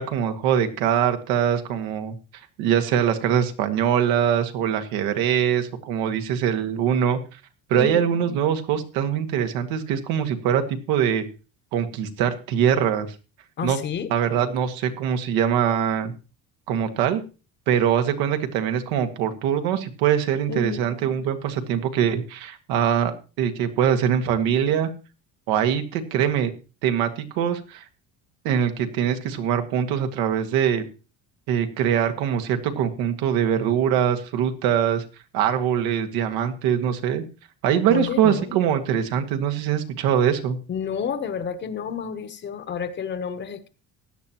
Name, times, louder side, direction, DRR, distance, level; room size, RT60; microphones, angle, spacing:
voice 1, 0.0-2.1 2.6-7.2 7.7-11.3 11.7-13.1 13.6-13.8 14.1-16.1 16.7-17.2 17.7-24.9 25.5-26.5 26.8-27.8 28.4-30.8 31.5-35.0 35.3-37.2 37.6-40.6, right 9 dB, 85° right, 7 dB, 1.8 m, -23 dB
voice 2, 7.7-8.0 13.6-14.1 20.5-20.8 37.9-38.5 40.7-43.7, left 6 dB, 30° left, 11 dB, 0.9 m, -30 dB
16.0 x 10.0 x 3.0 m, 0.32 s
cardioid pair, 160°, 37 cm